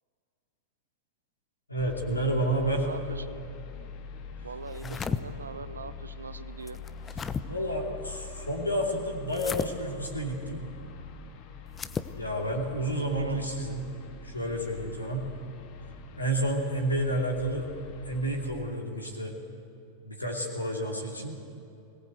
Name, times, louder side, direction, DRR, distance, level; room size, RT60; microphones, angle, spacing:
voice 1, 1.7-2.9 4.8-5.0 7.2-10.6 12.1-13.9 14.2-15.3 16.2-17.7 18.0-19.4 20.0-21.4, right 1 dB, 80° left, 1 dB, 2.7 m, -30 dB
sound 1, 1.8-18.5, left 5 dB, 45° left, 1.7 m, -44 dB
voice 2, 2.6-3.4 4.4-6.8 13.2-13.5, right 4 dB, 75° right, 13 dB, 0.9 m, -42 dB
sound 2, 4.7-5.2 6.7-7.4 9.3-9.7 11.7-12.1, left 6 dB, 20° left, 0.8 m, -33 dB
22.0 x 18.5 x 8.0 m, 2.7 s
figure-of-eight pair, 90°, 0 cm